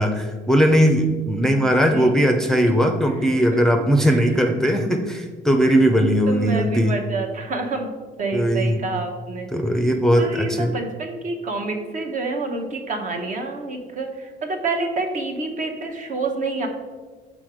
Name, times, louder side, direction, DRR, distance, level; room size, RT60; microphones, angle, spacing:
voice 1, 0.0-7.0 8.3-8.8 9.5-10.7, equal, 5° left, 4 dB, 0.5 m, -19 dB
voice 2, 6.3-7.9 8.2-9.5 10.2-16.7, right 3 dB, 50° right, 4 dB, 1.0 m, -28 dB
6.2 x 3.9 x 4.9 m, 1.4 s
cardioid pair, 110°, 17 cm